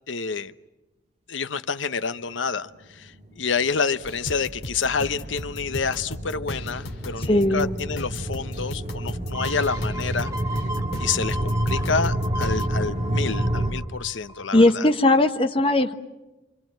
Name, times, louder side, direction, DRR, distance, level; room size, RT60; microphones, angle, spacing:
voice 1, 0.1-0.5 1.3-10.3 11.0-14.9, left 5 dB, 80° left, 12 dB, 1.0 m, -28 dB
sound 1, 3.4-13.7, right 1 dB, 35° right, 2.8 m, -29 dB
sound 2, 4.0-12.7, left 1 dB, 55° left, 2.3 m, -36 dB
voice 2, 7.3-7.8 14.5-15.9, left 1 dB, 30° left, 5 dB, 1.3 m, -18 dB
sound 3, 9.3-14.8 15.3-15.4, right 1 dB, 15° right, 1.6 m, -36 dB
27.5 x 25.5 x 7.7 m, 1.0 s
head